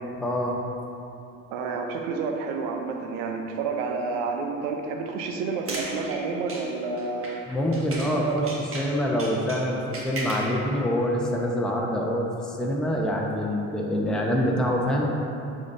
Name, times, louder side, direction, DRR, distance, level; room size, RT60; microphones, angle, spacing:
voice 1, 0.2-0.6 7.5-8.4 8.7-15.0, equal, ahead, -2 dB, 1.0 m, -25 dB
voice 2, 1.5-7.4 8.0-8.5, right 4 dB, 65° right, 3 dB, 0.8 m, -30 dB
sound 1, 5.4-8.2 8.5-10.5, right 2 dB, 35° right, 1.5 m, -37 dB
8.6 x 6.6 x 2.7 m, 2.8 s
figure-of-eight pair, 50°, 40 cm